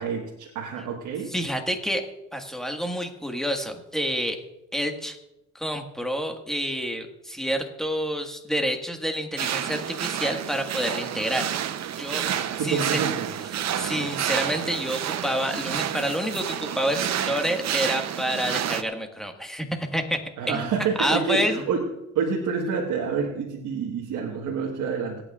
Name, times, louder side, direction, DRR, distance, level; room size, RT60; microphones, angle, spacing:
voice 1, 0.0-1.3 12.2-13.3 20.4-21.9 22.1-25.2, right 6 dB, 85° right, -1 dB, 1.5 m, -28 dB
voice 2, 1.3-2.1 2.3-4.4 4.7-5.2 5.6-11.5 12.0-12.2 12.6-13.0 13.7-20.2 20.5-20.7 21.0-21.6, equal, ahead, 3 dB, 1.6 m, -28 dB
sound 1, 9.4-18.8, right 10 dB, 65° right, 0.8 m, -29 dB
25.5 x 8.9 x 2.4 m, 0.90 s
cardioid pair, 90°, 30 cm